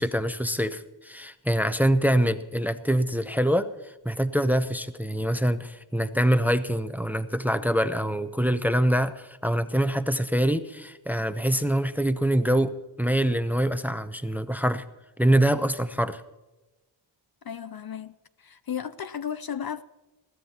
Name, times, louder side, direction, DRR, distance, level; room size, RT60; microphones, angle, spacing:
voice 1, 0.0-12.7 13.0-14.8 15.2-16.2, right 1 dB, 5° right, 0.6 m, -25 dB
voice 2, 17.4-19.8, left 8 dB, 50° left, 0.5 m, -34 dB
21.5 x 15.5 x 2.9 m
wide cardioid pair, 90°, 48 cm